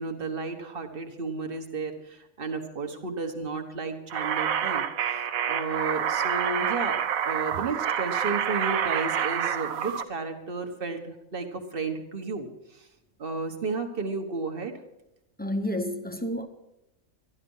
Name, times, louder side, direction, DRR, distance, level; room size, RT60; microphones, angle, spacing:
voice 1, 0.0-4.8 5.5-12.5 12.7-12.9 13.2-14.8, right 4 dB, 45° right, 1.5 m, -33 dB
sound 1, 4.1-10.0, right 8 dB, 90° right, 1.2 m, -28 dB
voice 2, 15.4-16.5, left 1 dB, 10° left, 0.8 m, -30 dB
13.5 x 11.5 x 5.4 m
omnidirectional pair, 1.4 m